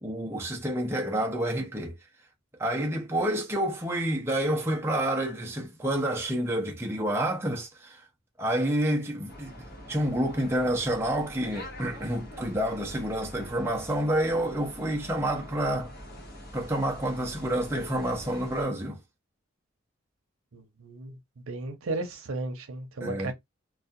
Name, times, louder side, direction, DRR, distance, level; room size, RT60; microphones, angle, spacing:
voice 1, 0.0-2.0 2.6-8.0 8.4-9.5 9.9-15.9 16.5-19.0 23.0-23.3, right 1 dB, 10° right, 0.5 m, -28 dB
sound 1, 9.3-18.7, left 1 dB, 45° left, 0.9 m, -45 dB
voice 2, 20.5-23.3, right 2 dB, 90° right, 0.7 m, -35 dB
2.3 x 2.2 x 2.6 m
head